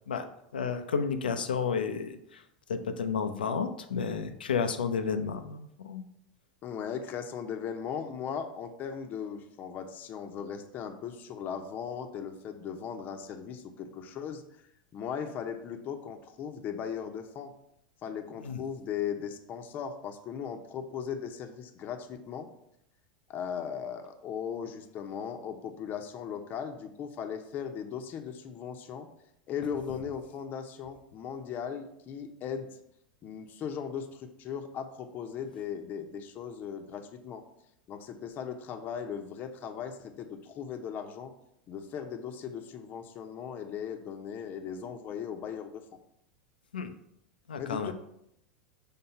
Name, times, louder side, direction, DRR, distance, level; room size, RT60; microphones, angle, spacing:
voice 1, 0.5-2.4 2.7-6.0 18.4-18.6 46.7-46.9 47.5-47.9, left 6 dB, 90° left, 8 dB, 0.6 m, -31 dB
voice 2, 6.6-14.4 14.9-17.5 18.0-22.5 23.3-29.1 29.5-32.7 33.2-37.4 37.9-41.3 41.7-45.8 47.6-47.9, left 7 dB, 40° left, 5 dB, 0.8 m, -38 dB
5.7 x 3.7 x 5.5 m, 0.76 s
hypercardioid pair, 100°, 5 cm